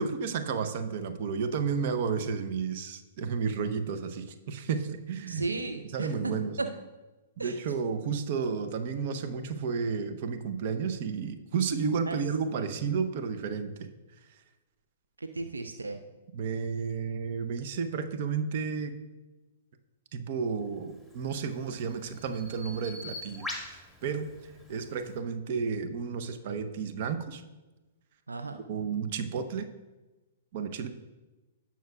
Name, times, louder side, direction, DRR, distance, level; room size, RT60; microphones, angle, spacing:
voice 1, 0.0-5.5 5.9-6.6 7.4-13.9 14.3-14.4 16.3-19.0 20.1-27.4 28.7-29.7 30.5-30.9, right 5 dB, 50° right, 9 dB, 0.8 m, -32 dB
voice 2, 5.3-6.3 6.6-6.8 7.4-7.6 12.1-12.2 15.2-16.0 28.3-28.6, right 3 dB, 80° right, 7 dB, 0.5 m, -34 dB
Bird vocalization bird call bird song, 21.0-25.2, left 1 dB, ahead, 1.9 m, -44 dB
16.5 x 6.0 x 2.4 m, 1.1 s
figure-of-eight pair, 110°, 0 cm